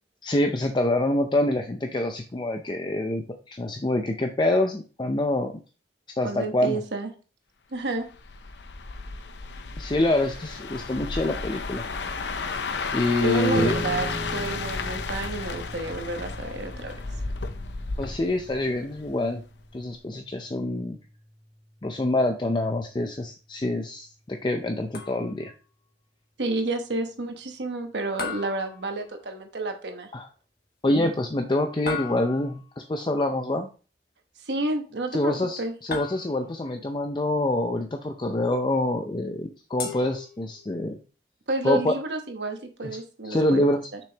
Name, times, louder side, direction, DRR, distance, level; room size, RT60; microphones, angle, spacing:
voice 1, 0.2-5.5 6.2-6.8 9.8-11.9 12.9-13.8 18.0-19.4 19.7-21.0 21.8-25.5 30.1-30.3 30.8-33.7 35.1-41.0 41.6-41.9 42.8-42.9 43.2-43.8, left 1 dB, 25° left, 5 dB, 0.5 m, -26 dB
voice 2, 6.2-7.1 7.7-8.0 13.2-17.0 26.4-30.1 34.4-35.7 41.5-43.6 43.9-44.0, right 2 dB, 80° right, 5 dB, 1.1 m, -30 dB
sound 1, 8.1-19.2 19.6-19.9, left 4 dB, 85° left, 0.7 m, -33 dB
sound 2, 13.5-24.3, equal, 20° right, 1.7 m, -41 dB
sound 3, 24.9-25.6 28.2-29.4 31.9-32.7 35.9-36.7 39.8-40.8, left 4 dB, 60° left, 1.5 m, -37 dB
6.7 x 6.1 x 2.9 m, 0.36 s
head